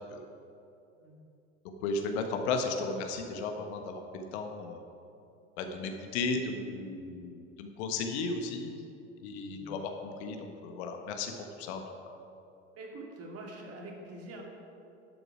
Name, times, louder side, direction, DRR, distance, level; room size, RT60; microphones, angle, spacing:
voice 1, 1.8-4.8 5.6-8.7 9.2-11.8, left 3 dB, 65° left, 4 dB, 1.4 m, -35 dB
voice 2, 12.7-14.4, right 2 dB, 45° right, -1 dB, 2.7 m, -45 dB
12.0 x 8.2 x 5.0 m, 2.7 s
hypercardioid pair, 80°, 35 cm